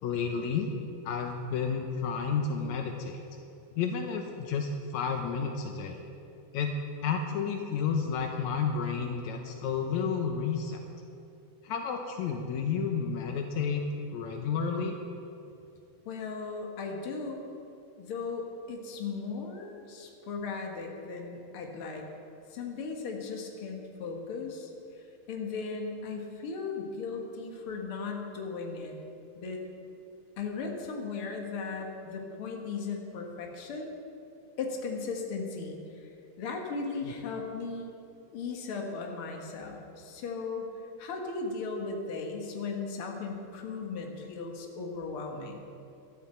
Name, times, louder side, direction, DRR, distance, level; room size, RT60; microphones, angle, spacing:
voice 1, 0.0-0.7 1.1-3.2 3.8-6.0 6.5-6.8 7.0-10.8 11.6-15.0 37.0-37.1, left 6 dB, 80° left, 4 dB, 2.2 m, -31 dB
voice 2, 16.1-17.4 18.0-22.1 22.5-29.0 29.4-29.6 30.4-33.9 34.6-36.1 36.4-37.9 38.3-40.7 41.0-45.6, left 4 dB, 55° left, 1 dB, 2.2 m, -37 dB
15.5 x 12.5 x 4.4 m, 2.6 s
omnidirectional pair, 3.3 m